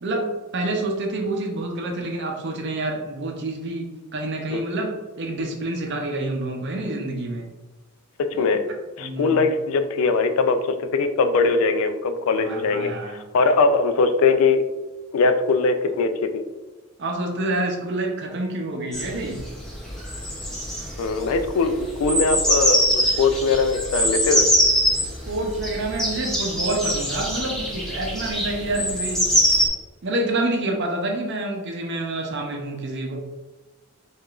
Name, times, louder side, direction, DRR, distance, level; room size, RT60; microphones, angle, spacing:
voice 1, 0.0-7.5 8.3-8.5 9.0-9.5 12.4-13.2 17.0-19.4 25.0-29.3 30.0-33.2, right 2 dB, 55° right, 2 dB, 0.6 m, -28 dB
voice 2, 8.4-8.7 9.0-14.6 15.1-16.4 21.0-24.5, left 4 dB, 70° left, 9 dB, 0.3 m, -21 dB
sound 1, 18.9-29.7, equal, 5° left, 0.7 m, -23 dB
4.6 x 2.4 x 2.4 m, 1.2 s
head